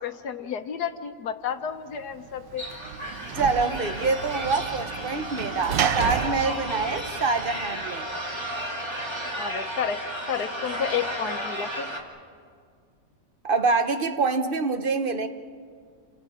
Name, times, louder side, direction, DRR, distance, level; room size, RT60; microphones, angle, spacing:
voice 1, 0.0-2.6 9.4-10.0 10.3-11.9, left 7 dB, 65° left, 8 dB, 1.5 m, -31 dB
Sliding door / Slam, 2.0-7.9, right 8 dB, 90° right, 1.6 m, -32 dB
sound 1, 2.6-12.0, right 1 dB, 15° right, 2.2 m, -33 dB
voice 2, 3.3-8.1 13.4-15.3, right 4 dB, 35° right, 8 dB, 1.0 m, -26 dB
29.5 x 25.5 x 5.0 m, 2.2 s
omnidirectional pair, 1.9 m